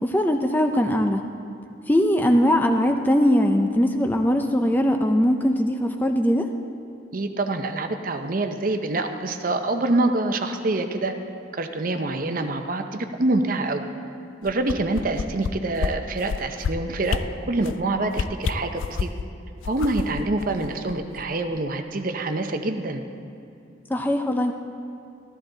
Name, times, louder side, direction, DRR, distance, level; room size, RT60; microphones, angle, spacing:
voice 1, 0.0-1.2 1.9-6.5 23.9-24.5, equal, 10° left, 5 dB, 0.4 m, -20 dB
voice 2, 7.1-11.1 11.5-13.8 14.4-19.1 19.6-23.0, right 2 dB, 45° right, 7 dB, 0.7 m, -26 dB
sound 1, 14.4-15.5 15.8-15.9 16.2-16.7 17.1-17.2 17.6-17.8 18.1-19.2 19.6-21.2 21.6-21.7, left 6 dB, 85° left, 0.4 m, -27 dB
13.5 x 13.5 x 3.9 m, 2.6 s
head